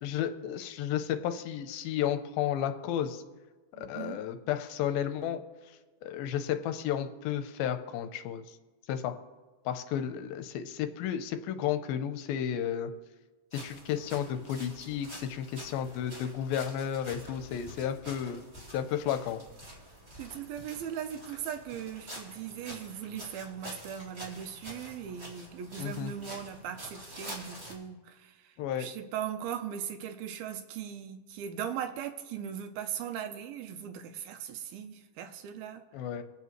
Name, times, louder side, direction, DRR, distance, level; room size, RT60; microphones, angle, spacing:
voice 1, 0.0-3.2 3.8-5.4 6.0-8.4 8.9-9.1 9.7-12.9 13.5-18.4 18.7-19.4 25.8-26.1 28.6-28.9 35.9-36.2, left 9 dB, 85° left, 8 dB, 2.5 m, -32 dB
voice 2, 3.7-4.2 20.2-35.8, right 9 dB, 85° right, 7 dB, 2.6 m, -39 dB
sound 1, 13.5-27.7, equal, 20° right, 2.2 m, -47 dB
24.0 x 8.2 x 3.1 m, 1.3 s
omnidirectional pair, 4.3 m